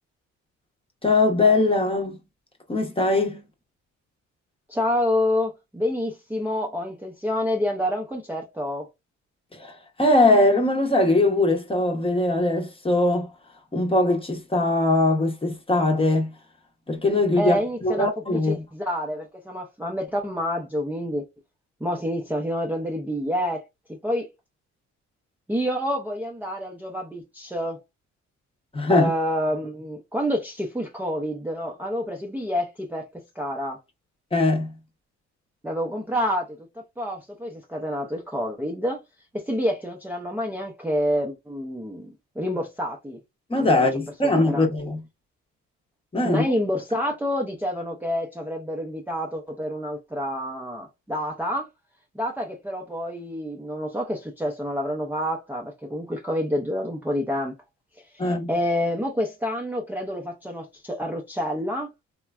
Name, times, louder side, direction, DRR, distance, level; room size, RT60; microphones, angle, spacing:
voice 1, 1.0-2.2 2.7-3.4 9.5-13.3 13.7-16.3 16.9-18.6 28.7-29.1 34.3-34.7 43.5-45.0 46.1-46.4 58.2-58.5, left 2 dB, 20° left, 0.8 m, -21 dB
voice 2, 4.7-8.9 17.4-21.2 21.8-24.3 25.5-27.8 28.9-33.8 35.6-39.0 39.3-43.2 43.6-43.8 44.2-44.7 46.2-51.7 52.1-57.5 58.1-61.9, equal, 5° right, 0.5 m, -28 dB
3.1 x 2.2 x 2.3 m
cardioid pair, 90°, 30 cm